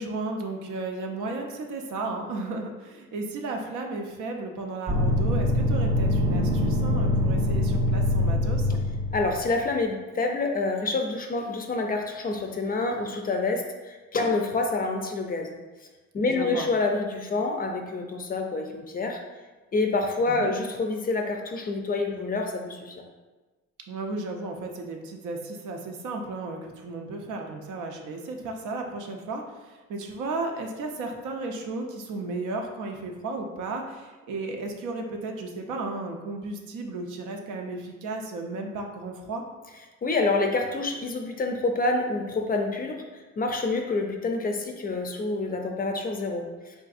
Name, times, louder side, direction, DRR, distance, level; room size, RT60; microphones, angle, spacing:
voice 1, 0.0-8.8 16.3-16.7 20.2-20.5 23.9-39.4, right 3 dB, 80° right, 2 dB, 0.5 m, -34 dB
sound 1, 4.9-9.4, left 1 dB, 25° right, 0.5 m, -24 dB
voice 2, 9.1-15.5 16.1-19.2 19.7-23.0 40.0-43.0 43.4-46.7, left 3 dB, 30° left, 3 dB, 0.4 m, -27 dB
3.7 x 2.5 x 2.4 m, 1.2 s
cardioid pair, 90°, 30 cm